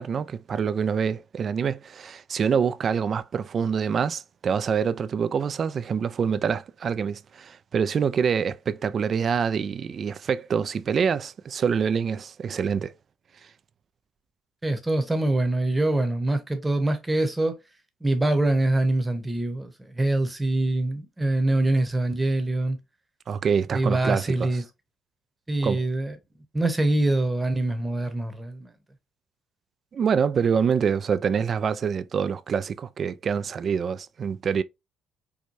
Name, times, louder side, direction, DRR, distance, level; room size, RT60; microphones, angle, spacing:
voice 1, 0.0-12.9 23.3-24.5 25.6-25.8 29.9-34.6, right 6 dB, 45° right, 0.3 m, -26 dB
voice 2, 14.6-17.5 18.0-22.8 23.7-24.6 25.5-26.2 26.5-28.7, right 2 dB, 15° right, 0.9 m, -24 dB
4.6 x 2.2 x 2.6 m
cardioid pair, 90°, 0 cm